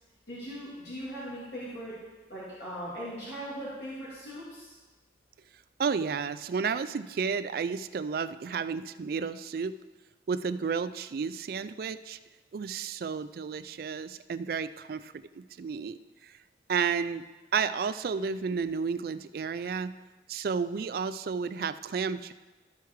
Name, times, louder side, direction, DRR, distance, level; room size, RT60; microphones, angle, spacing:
voice 1, 0.3-1.9 2.3-4.7, equal, 65° left, -9 dB, 2.6 m, -39 dB
voice 2, 5.8-9.8 10.3-12.2 12.5-16.3 16.7-17.3 17.5-19.9 20.3-22.3, right 5 dB, 55° right, 12 dB, 0.3 m, -32 dB
13.0 x 4.7 x 4.6 m, 1.2 s
head